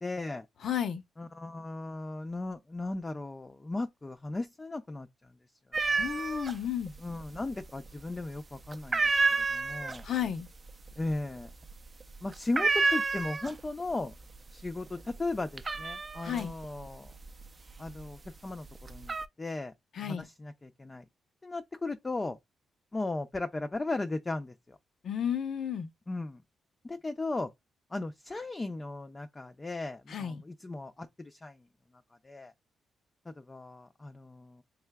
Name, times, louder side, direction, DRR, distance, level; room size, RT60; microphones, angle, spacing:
voice 1, 0.0-0.5 1.2-5.3 5.8-6.1 7.0-10.0 11.0-11.5 12.2-14.2 14.5-17.1 17.8-19.7 20.0-21.0 21.4-22.4 22.9-24.8 26.1-26.4 26.8-27.5 27.9-31.6 32.2-32.5 33.3-34.6, left 2 dB, 25° left, 0.5 m, -37 dB
voice 2, 0.6-1.0 6.0-6.9 10.0-10.5 16.2-16.5 19.9-20.2 25.0-25.9 30.1-30.4, left 9 dB, 65° left, 0.7 m, -32 dB
sound 1, 5.7-6.6 6.9-7.6 8.0-8.4 8.7-13.8 14.1-14.7 15.0-18.1 18.6-19.3, right 4 dB, 30° right, 0.5 m, -30 dB
5.4 x 3.4 x 2.2 m
cardioid pair, 95°, 0 cm